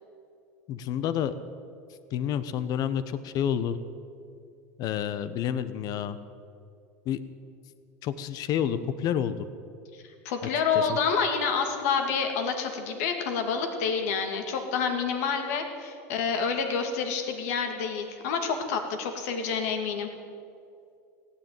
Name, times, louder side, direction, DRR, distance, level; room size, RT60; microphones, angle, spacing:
voice 1, 0.7-1.3 2.1-3.8 4.8-6.2 7.0-7.2 8.0-9.4 10.7-11.0, left 9 dB, 50° left, 13 dB, 1.1 m, -29 dB
voice 2, 9.9-20.1, left 5 dB, 75° left, 5 dB, 2.4 m, -28 dB
16.0 x 9.9 x 9.1 m, 2.4 s
supercardioid pair, 105°, 8 cm